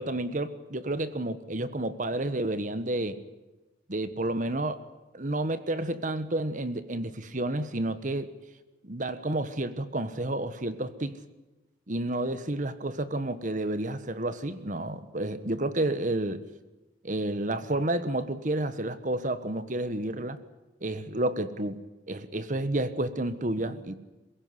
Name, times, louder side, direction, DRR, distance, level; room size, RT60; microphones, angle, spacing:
voice 1, 0.0-3.2 3.9-4.8 5.1-8.3 8.8-11.2 11.9-16.4 17.0-20.4 20.8-21.8 22.1-23.9, right 1 dB, 45° right, 12 dB, 1.3 m, -30 dB
23.0 x 16.0 x 9.8 m, 1.1 s
head